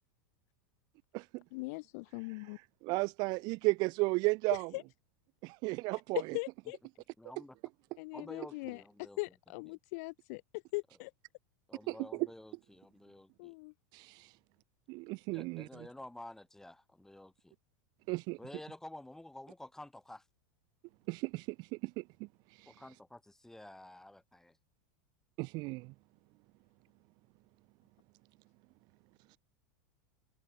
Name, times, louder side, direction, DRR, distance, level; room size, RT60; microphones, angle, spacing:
voice 1, 1.5-2.6 4.7-4.8 6.3-6.8 8.0-8.8 9.2-10.4 10.7-11.1 13.4-13.7, left 27 dB, 60° left, 1.1 m, -40 dB
voice 2, 2.8-4.7 5.4-6.2 11.9-12.0 13.9-14.3 14.9-15.7 18.1-18.4 21.1-22.0 25.4-25.9, right 26 dB, 45° right, 0.4 m, -34 dB
voice 3, 7.2-7.6 8.1-9.2 11.7-13.6 15.3-17.5 18.4-20.2 22.7-24.6, left 1 dB, 5° left, 7.5 m, -51 dB
supercardioid pair, 125°, 10 cm